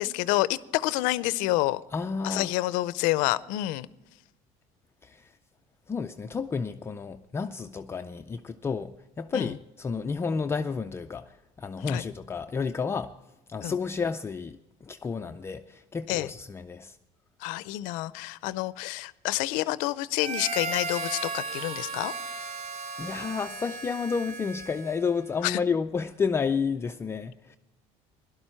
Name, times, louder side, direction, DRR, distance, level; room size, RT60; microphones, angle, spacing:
voice 1, 0.0-1.8 2.2-3.9 9.3-9.5 11.8-12.0 13.6-13.8 16.1-16.3 17.4-22.1 25.4-25.6, left 18 dB, 85° left, 18 dB, 0.5 m, -28 dB
voice 2, 1.9-2.5 5.0-5.3 5.9-13.1 13.5-17.0 23.0-27.6, left 5 dB, 20° left, 7 dB, 0.4 m, -31 dB
Harmonica, 20.2-25.2, right 3 dB, 70° right, 1.4 m, -36 dB
17.0 x 12.0 x 4.4 m, 0.97 s
cardioid pair, 145°, 13 cm